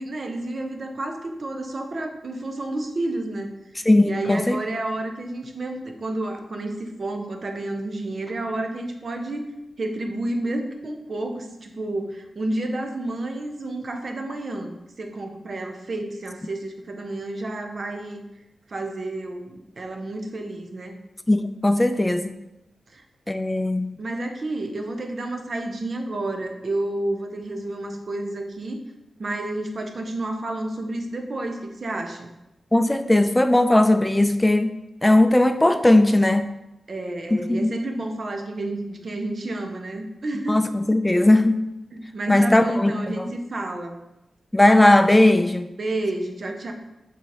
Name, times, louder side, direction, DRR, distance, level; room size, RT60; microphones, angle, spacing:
voice 1, 0.0-3.5 4.0-9.5 9.8-18.2 18.7-21.0 22.9-23.0 24.0-28.8 29.2-32.3 36.9-40.6 41.9-44.0 45.8-46.7, right 2 dB, 60° right, 4 dB, 0.6 m, -30 dB
voice 2, 3.9-4.6 21.3-22.3 23.3-24.0 32.7-34.7 35.0-36.5 37.3-37.7 40.5-41.6 42.3-43.3 44.5-45.7, left 1 dB, 15° left, 9 dB, 0.3 m, -18 dB
3.9 x 2.9 x 4.7 m, 0.92 s
cardioid pair, 45°, 0 cm